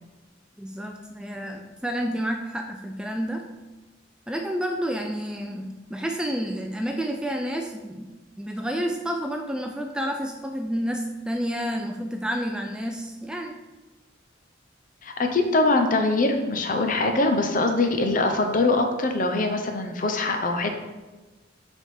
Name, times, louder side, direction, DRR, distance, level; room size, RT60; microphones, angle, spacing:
voice 1, 0.6-3.4 4.3-8.1 8.4-13.6, equal, 5° right, 3 dB, 0.3 m, -30 dB
voice 2, 15.0-20.7, left 2 dB, 45° left, 5 dB, 0.7 m, -23 dB
6.7 x 3.6 x 4.8 m, 1.2 s
head